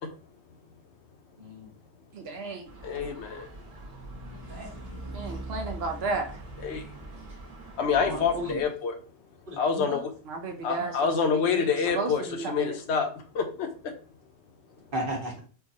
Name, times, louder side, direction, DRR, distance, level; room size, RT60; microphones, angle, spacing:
voice 1, 1.4-1.7 4.5-4.7 7.9-8.6 9.5-10.0 14.9-15.4, equal, 55° right, -1 dB, 1.2 m, -35 dB
voice 2, 2.1-2.7 5.1-6.4 10.3-13.0, right 3 dB, 70° right, 3 dB, 0.8 m, -33 dB
sound 1, 2.7-8.7, right 1 dB, 35° right, 1.2 m, -42 dB
voice 3, 2.8-3.5 6.6-6.8 7.8-8.9 9.6-10.1 10.6-13.7, left 6 dB, 80° left, 6 dB, 0.9 m, -27 dB
4.5 x 2.3 x 2.6 m, 0.38 s
omnidirectional pair, 1.1 m